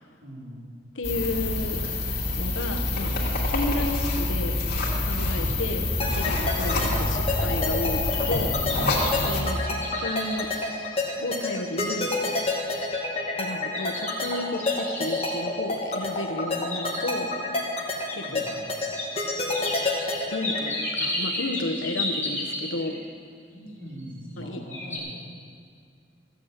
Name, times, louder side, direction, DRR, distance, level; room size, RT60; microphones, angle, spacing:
voice 1, 0.2-0.7 18.2-18.7 23.5-25.1, equal, 90° right, -5 dB, 4.1 m, -41 dB
voice 2, 0.9-1.9 2.4-4.6 5.0-8.6 9.1-10.5 11.2-12.1 13.4-17.3 18.1-18.6 19.6-19.7 20.3-23.0 24.4-24.6, left 2 dB, 90° left, 5 dB, 1.2 m, -32 dB
sound 1, 1.0-9.4, left 2 dB, 55° left, 2.8 m, -26 dB
sound 2, 6.0-20.7, left 2 dB, 30° left, 1.9 m, -28 dB
sound 3, 7.8-11.4 11.9-12.0 12.5-12.9 13.7-15.4 16.4-17.4 18.1-18.2 18.9-19.1 19.5-23.0 24.0-24.4 24.7-25.0, left 2 dB, 10° left, 2.8 m, -33 dB
15.0 x 8.3 x 7.6 m, 2.1 s
head